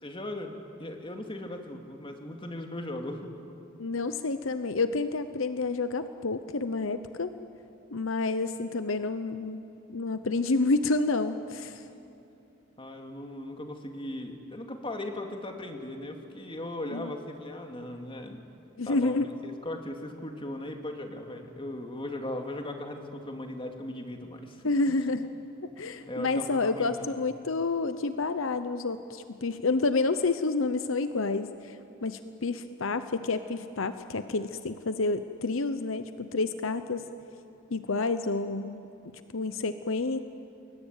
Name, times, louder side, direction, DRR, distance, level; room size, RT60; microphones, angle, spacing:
voice 1, 0.0-3.3 12.8-18.4 18.8-19.1 19.4-24.9 25.8-27.1, left 1 dB, 25° left, 4 dB, 2.4 m, -38 dB
voice 2, 3.8-7.4 7.9-11.8 16.9-17.1 18.8-19.3 24.6-25.3 25.6-31.8 32.0-37.0 37.7-38.8 39.3-40.2, left 3 dB, 75° left, 10 dB, 0.9 m, -29 dB
29.0 x 21.5 x 9.1 m, 2.7 s
head